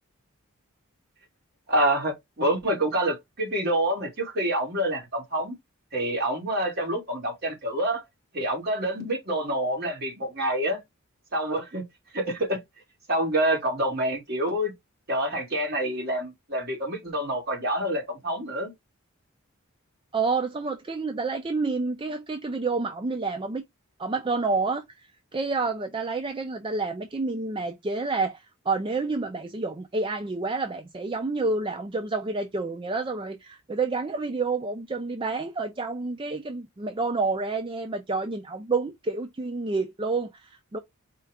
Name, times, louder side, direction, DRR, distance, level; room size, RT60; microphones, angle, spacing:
voice 1, 1.7-5.6 5.9-8.0 8.3-10.8 11.3-11.8 12.1-12.6 13.1-14.7 15.1-18.7, right 1 dB, 45° right, 2.0 m, -27 dB
voice 2, 20.1-23.6 24.0-40.8, right 3 dB, 25° right, 0.4 m, -29 dB
4.5 x 2.4 x 4.7 m
head